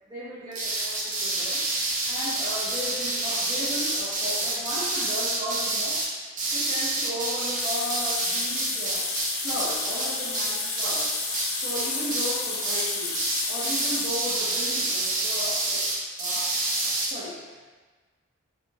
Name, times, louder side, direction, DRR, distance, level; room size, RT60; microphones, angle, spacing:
voice 1, 0.1-1.6 2.1-9.1 9.4-11.1 11.6-13.2 13.5-15.8 16.2-16.5 16.8-17.8, equal, 20° right, -10 dB, 1.0 m, -36 dB
sound 1, 0.5-11.5 11.7-12.4 12.6-12.9 13.1-17.1, right 2 dB, 40° right, 0.6 m, -28 dB
sound 2, 7.6-14.2, left 3 dB, 50° left, 0.6 m, -31 dB
3.3 x 2.5 x 4.1 m, 1.4 s
head